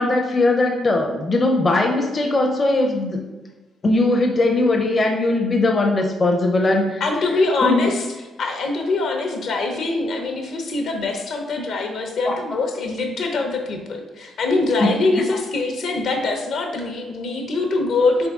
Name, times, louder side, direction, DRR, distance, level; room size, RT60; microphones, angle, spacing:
voice 1, 0.0-3.2 3.8-7.0 7.6-7.9 12.3-12.4 14.8-15.2, left 2 dB, 30° left, 1 dB, 0.5 m, -19 dB
voice 2, 7.0-8.1 8.4-18.3, left 3 dB, 70° left, 3 dB, 0.7 m, -23 dB
3.6 x 3.4 x 3.6 m, 1.2 s
cardioid pair, 90°, 0 cm